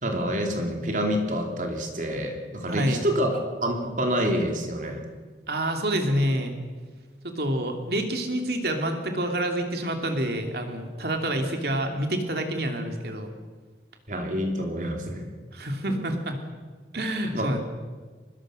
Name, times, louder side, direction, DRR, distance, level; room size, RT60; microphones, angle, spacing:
voice 1, 0.0-5.0 14.1-15.3 15.9-16.1 17.1-17.6, equal, 45° right, 3 dB, 3.1 m, -27 dB
voice 2, 2.7-3.0 5.5-6.6 7.2-13.3 15.5-16.4 16.9-17.6, right 1 dB, 60° right, 4 dB, 2.8 m, -27 dB
24.0 x 20.5 x 6.4 m, 1.4 s
head